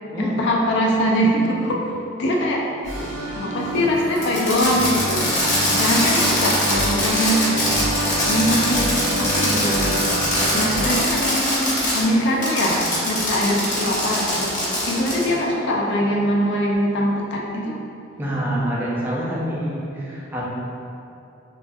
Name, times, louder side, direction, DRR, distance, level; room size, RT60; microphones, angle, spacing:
voice 1, 0.2-1.8 2.2-3.1 3.3-5.3 5.8-7.7 8.3-8.9 9.2-10.0 10.5-14.5 14.9-17.8, equal, 60° left, -2 dB, 0.4 m, -22 dB
sound 1, 2.8-10.8, right 1 dB, 80° left, 1.2 m, -27 dB
Fireworks, 4.2-12.0 12.4-15.3, left 1 dB, 40° left, 0.8 m, -22 dB
voice 2, 18.2-20.4, right 1 dB, 10° right, -6 dB, 0.5 m, -26 dB
3.0 x 2.3 x 2.6 m, 2.7 s
head